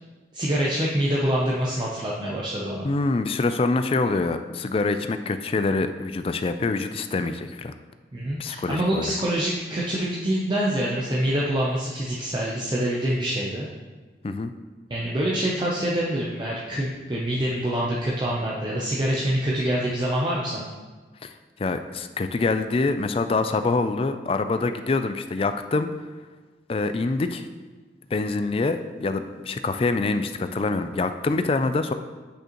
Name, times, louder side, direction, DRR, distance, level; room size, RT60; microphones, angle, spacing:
voice 1, 0.3-2.9 8.1-13.7 14.9-20.7, right 1 dB, 25° right, -4 dB, 0.6 m, -25 dB
voice 2, 2.8-7.7 8.4-9.1 14.2-14.5 21.2-21.3 21.6-25.9 26.7-27.5 28.1-31.9, left 3 dB, 30° left, 9 dB, 0.3 m, -25 dB
8.5 x 5.4 x 3.0 m, 1.3 s
head